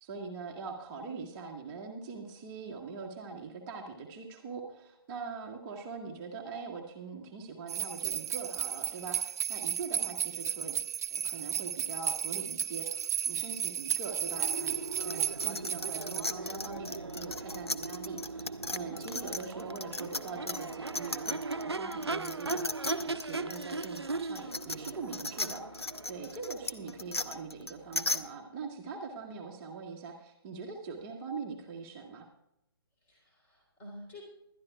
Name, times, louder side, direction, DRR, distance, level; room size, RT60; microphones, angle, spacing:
voice 1, 0.0-10.8 11.1-32.3, right 4 dB, 20° right, 0 dB, 1.2 m, -42 dB
sound 1, 7.7-16.2, right 7 dB, 40° right, 0.5 m, -34 dB
Crowd / Race car auto racing / Accelerating revving vroom, 14.2-28.0, right 3 dB, 85° right, 0.6 m, -39 dB
sound 2, 15.0-21.6 21.9-28.2, left 2 dB, 85° left, 0.8 m, -36 dB
voice 2, 18.7-19.3 29.1-29.6 33.0-34.2, left 1 dB, 15° left, -2 dB, 3.6 m, -51 dB
20.5 x 12.0 x 2.4 m, 0.84 s
figure-of-eight pair, 140°, 13 cm